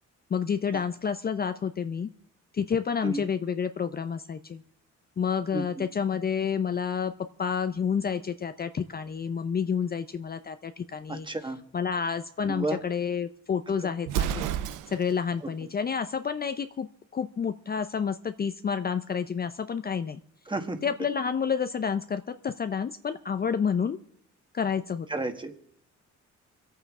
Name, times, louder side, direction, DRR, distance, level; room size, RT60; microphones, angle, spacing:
voice 1, 0.3-2.1 2.5-4.6 5.2-7.1 7.4-11.3 11.7-14.5 14.9-16.9 17.1-20.2 20.8-24.0 24.5-25.1, left 6 dB, 30° left, 11 dB, 0.6 m, -29 dB
voice 2, 5.5-5.9 11.1-11.6 12.4-12.8 13.7-13.9 15.4-15.5 20.5-20.8 25.1-25.5, right 2 dB, 15° right, 7 dB, 1.6 m, -32 dB
Explosion, 14.0-15.2, right 10 dB, 85° right, 0.7 m, -30 dB
26.5 x 8.9 x 3.6 m, 0.68 s
cardioid pair, 90°, 30 cm